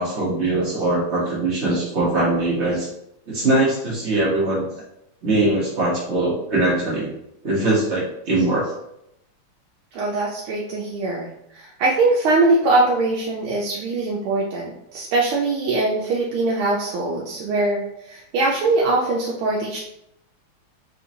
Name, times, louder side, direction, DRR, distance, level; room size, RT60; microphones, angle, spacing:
voice 1, 0.0-2.9 3.3-4.6 5.2-7.1 7.4-8.7, right 2 dB, 45° right, -5 dB, 1.0 m, -21 dB
voice 2, 9.9-19.8, right 2 dB, 80° right, -3 dB, 1.4 m, -22 dB
4.1 x 2.8 x 2.6 m, 0.79 s
omnidirectional pair, 2.3 m